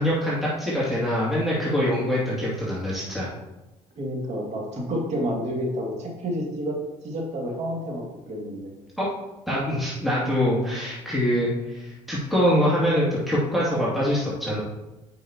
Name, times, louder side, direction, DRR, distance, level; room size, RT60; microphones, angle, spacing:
voice 1, 0.0-3.3 9.0-9.1 9.5-14.6, equal, ahead, -8 dB, 2.4 m, -24 dB
voice 2, 4.0-8.7, equal, 50° right, -1 dB, 2.2 m, -30 dB
9.3 x 5.5 x 2.9 m, 1.0 s
supercardioid pair, 85°, 14 cm